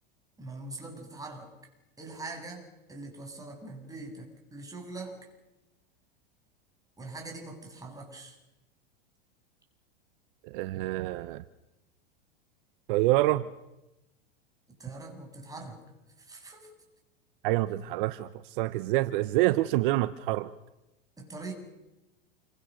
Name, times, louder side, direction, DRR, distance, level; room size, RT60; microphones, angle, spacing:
voice 1, 0.4-1.5 2.0-2.6 2.9-5.3 7.0-8.4 14.7-15.8 16.2-16.7 21.2-21.5, right 3 dB, 10° right, 3 dB, 7.6 m, -42 dB
voice 2, 10.5-11.4 12.9-13.5 17.4-18.3 18.6-20.5, right 17 dB, 60° right, 14 dB, 1.0 m, -26 dB
28.5 x 24.5 x 6.5 m, 0.98 s
hypercardioid pair, 115°, 29 cm